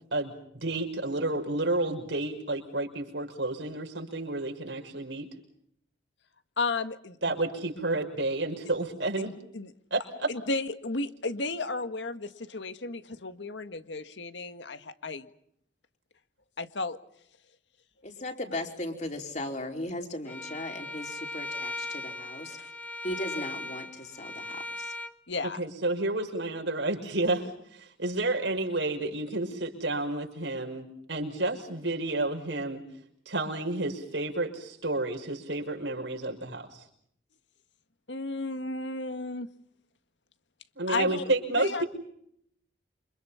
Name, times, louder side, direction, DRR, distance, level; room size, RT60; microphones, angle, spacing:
voice 1, 0.1-5.3 7.2-9.3 9.9-10.3 25.6-32.8 33.3-36.8 40.8-41.8, right 2 dB, 80° right, 3 dB, 5.9 m, -30 dB
voice 2, 6.6-7.3 9.5-9.7 10.3-15.3 16.6-17.0 22.6-22.7 25.3-25.6 38.1-39.5 40.9-41.3 41.5-41.8, left 3 dB, 80° left, 10 dB, 1.7 m, -33 dB
voice 3, 18.0-22.6 23.0-24.9, left 1 dB, 40° left, 3 dB, 4.4 m, -37 dB
Bowed string instrument, 20.3-25.1, left 2 dB, 10° left, 1.2 m, -38 dB
28.5 x 26.5 x 5.8 m, 0.71 s
head